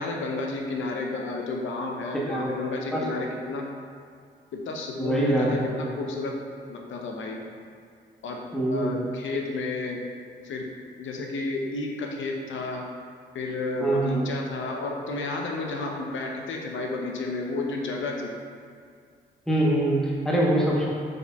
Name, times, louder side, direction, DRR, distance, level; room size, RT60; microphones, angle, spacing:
voice 1, 0.0-3.7 4.5-6.4 6.7-7.4 8.2-10.0 10.4-10.7 11.0-12.9 13.3-18.3, left 3 dB, 70° left, 1 dB, 0.7 m, -31 dB
voice 2, 5.0-5.9 8.5-9.1 13.8-14.3 19.5-20.9, right 1 dB, ahead, -5 dB, 0.9 m, -24 dB
5.2 x 4.1 x 2.3 m, 2.2 s
supercardioid pair, 55°, 21 cm